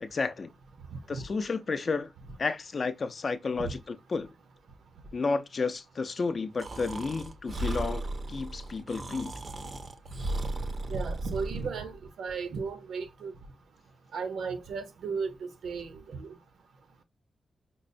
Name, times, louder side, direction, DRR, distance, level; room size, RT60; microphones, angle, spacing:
voice 1, 0.0-0.5 1.1-2.1 2.4-4.3 5.1-9.3, left 4 dB, 40° left, 0.4 m, -32 dB
Breathing, 6.6-11.7, right 2 dB, 40° right, 0.4 m, -36 dB
voice 2, 10.9-13.3 14.1-16.4, right 5 dB, 85° right, 0.6 m, -35 dB
5.2 x 2.0 x 2.5 m
wide cardioid pair, 130°, 0 cm